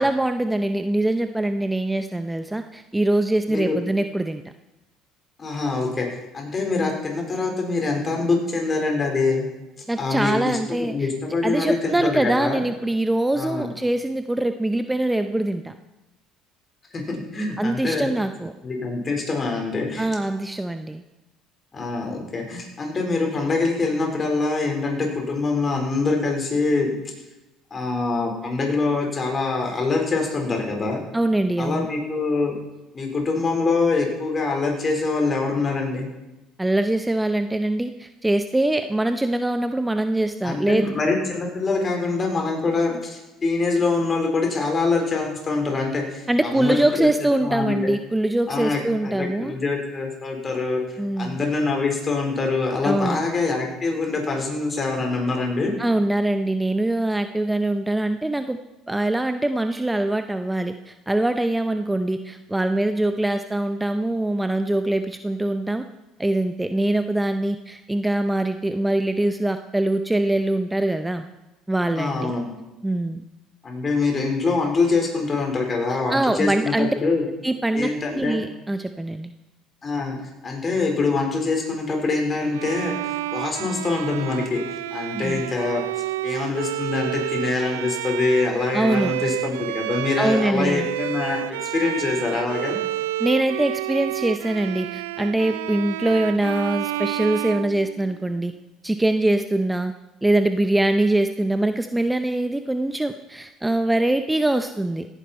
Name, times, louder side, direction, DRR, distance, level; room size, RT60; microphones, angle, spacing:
voice 1, 0.0-4.4 9.9-10.9 11.4-15.7 17.6-18.5 20.0-21.0 31.1-31.9 36.6-40.9 46.3-49.5 51.0-51.4 52.8-53.2 55.8-58.6 58.9-65.8 66.2-71.3 71.7-72.3 72.8-73.2 76.1-76.9 77.4-77.9 78.1-79.3 85.2-85.4 88.7-89.1 90.2-90.9 93.2-98.5 98.8-99.9 100.2-105.1, right 1 dB, 10° right, 8 dB, 0.6 m, -23 dB
voice 2, 5.4-9.5 10.0-12.6 13.3-13.7 16.9-18.1 18.6-20.1 21.7-26.9 27.7-31.0 31.6-32.5 32.9-36.1 40.4-47.1 47.4-47.8 48.5-55.7 71.9-72.5 73.6-77.2 77.7-78.4 79.8-80.2 80.4-84.6 84.9-85.8 86.2-92.8, left 3 dB, 35° left, 2 dB, 4.2 m, -24 dB
Bowed string instrument, 82.5-98.4, right 15 dB, 90° right, 0.4 m, -30 dB
16.5 x 10.0 x 4.3 m, 1.0 s
hypercardioid pair, 75°, 0 cm